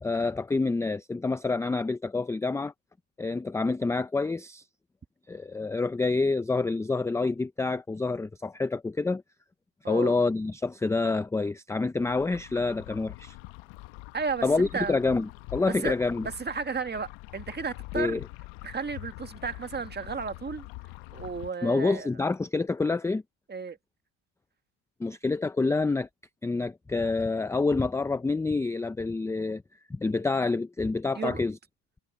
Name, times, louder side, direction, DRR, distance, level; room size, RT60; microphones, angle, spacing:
voice 1, 0.0-2.7 3.2-4.6 5.3-9.2 9.9-13.4 14.4-16.3 17.9-18.2 21.6-23.2 25.0-26.1 26.4-29.6 29.9-31.6, left 3 dB, 5° left, 0.4 m, -27 dB
sound 1, 12.0-21.5, left 21 dB, 75° left, 1.1 m, -44 dB
voice 2, 14.1-15.0 15.7-16.0 16.2-18.2 18.6-20.7 21.1-22.1 23.5-23.8 31.1-31.4, right 5 dB, 20° right, 1.7 m, -33 dB
supercardioid pair, 110°, 46 cm